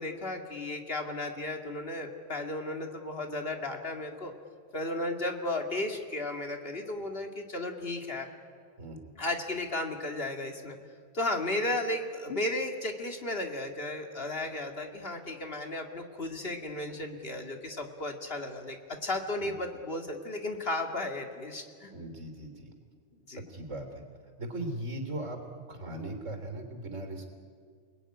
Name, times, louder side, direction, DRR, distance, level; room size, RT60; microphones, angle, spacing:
voice 1, 0.0-4.3 4.7-8.3 9.2-10.8 11.1-21.9 23.3-23.4, left 2 dB, 50° left, 3 dB, 2.5 m, -34 dB
voice 2, 8.8-9.1 19.4-19.5 21.9-22.7 23.5-24.0 24.4-27.2, right 1 dB, 90° right, 5 dB, 3.8 m, -38 dB
29.0 x 20.0 x 9.8 m, 2.1 s
omnidirectional pair, 1.3 m